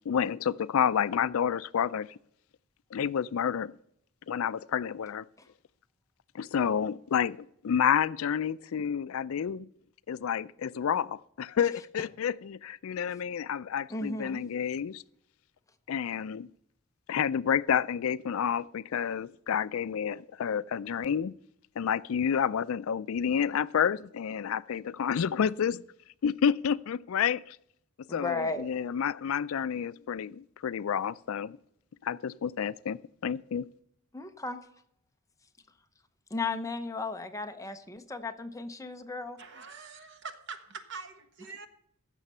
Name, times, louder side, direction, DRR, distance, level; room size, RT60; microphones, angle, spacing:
voice 1, 0.1-2.2 2.9-3.7 4.3-5.2 6.3-9.7 10.1-15.0 15.9-16.5 17.1-21.3 21.8-25.8 26.2-27.6 28.1-31.6 32.0-33.6, left 8 dB, 70° left, 0.4 m, -29 dB
voice 2, 13.9-14.4 28.1-28.6 34.1-34.6 36.3-39.4, left 3 dB, 15° left, 0.7 m, -35 dB
voice 3, 39.4-41.7, right 5 dB, 55° right, 1.3 m, -44 dB
15.5 x 6.6 x 5.5 m
head